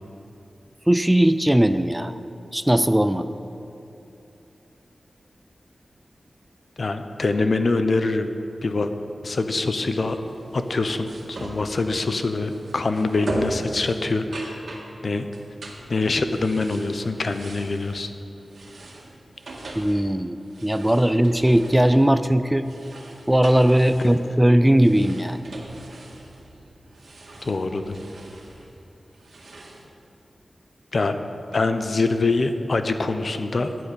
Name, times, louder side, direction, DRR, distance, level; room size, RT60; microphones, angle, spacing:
voice 1, 0.9-2.2 2.5-3.3 19.8-20.4 20.6-22.7 23.3-25.4, right 1 dB, 10° right, 11 dB, 0.4 m, -18 dB
voice 2, 6.8-8.3 8.6-8.9 9.2-10.2 10.5-14.7 15.0-15.3 15.9-18.1 19.7-19.8 23.8-23.9 27.4-28.0 30.9-31.2 31.5-33.7, left 3 dB, 60° left, 8 dB, 0.8 m, -24 dB
sound 1, 10.0-29.8, right 2 dB, 75° right, 1.7 m, -39 dB
11.0 x 8.6 x 8.1 m, 2.8 s
wide cardioid pair, 80°, 0 cm